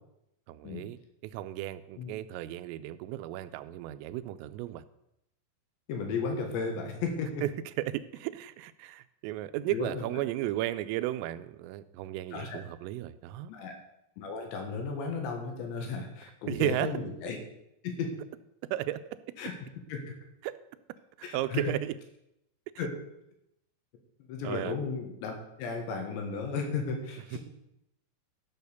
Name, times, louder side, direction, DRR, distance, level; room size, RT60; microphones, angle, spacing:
voice 1, 0.5-1.0 1.2-4.8 7.4-7.5 7.8-13.5 16.5-16.9 18.7-19.0 20.4-20.6 21.3-21.9 24.4-24.7 27.3-27.4, right 14 dB, 90° right, 13 dB, 3.2 m, -34 dB
voice 2, 5.9-7.4 9.7-10.2 12.3-12.6 13.5-13.8 14.2-17.4 17.8-18.1 19.4-19.5 19.9-20.0 21.2-21.6 22.8-22.9 24.3-27.4, left 4 dB, 70° left, 3 dB, 3.6 m, -34 dB
13.0 x 6.6 x 6.7 m, 0.82 s
omnidirectional pair, 5.9 m